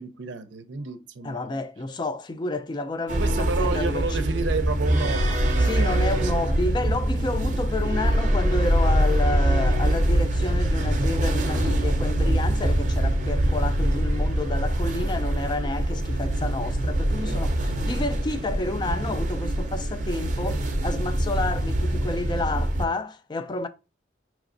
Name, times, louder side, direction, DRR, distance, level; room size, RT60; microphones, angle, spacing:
voice 1, 0.0-1.5 3.2-6.3, right 3 dB, 90° right, 0.5 m, -31 dB
voice 2, 1.2-4.2 5.6-23.7, left 2 dB, 25° left, 0.3 m, -30 dB
sound 1, 3.1-22.8, right 1 dB, 45° right, 0.5 m, -24 dB
5.0 x 3.0 x 2.5 m
head